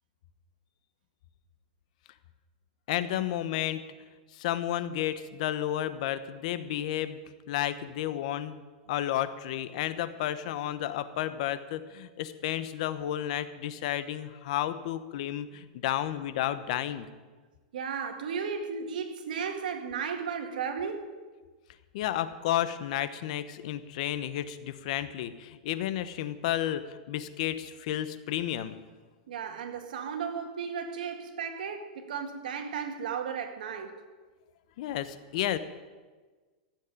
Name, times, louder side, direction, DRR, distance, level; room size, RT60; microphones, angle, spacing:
voice 1, 2.9-3.8 4.3-7.2 7.5-8.6 8.9-17.1 21.9-28.8 34.8-35.6, left 12 dB, 55° left, 1.0 m, -32 dB
voice 2, 17.7-21.1 29.3-34.0, right 6 dB, 85° right, 2.0 m, -35 dB
15.5 x 7.4 x 9.9 m
supercardioid pair, 160°, 5 cm